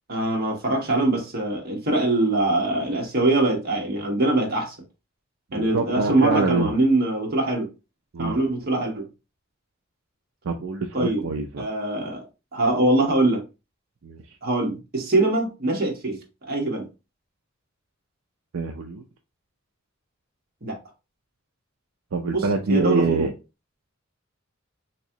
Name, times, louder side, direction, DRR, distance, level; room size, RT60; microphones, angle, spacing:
voice 1, 0.1-4.8 5.5-7.7 8.2-9.1 10.9-11.3 11.6-12.2 12.5-13.4 14.4-16.2 16.5-16.8 20.6-20.8 22.3-23.3, right 2 dB, 50° right, 1.2 m, -23 dB
voice 2, 5.5-6.7 8.1-8.4 10.4-11.6 14.0-14.2 18.5-19.0 22.1-23.3, right 3 dB, 75° right, 0.5 m, -25 dB
3.5 x 3.0 x 2.8 m
head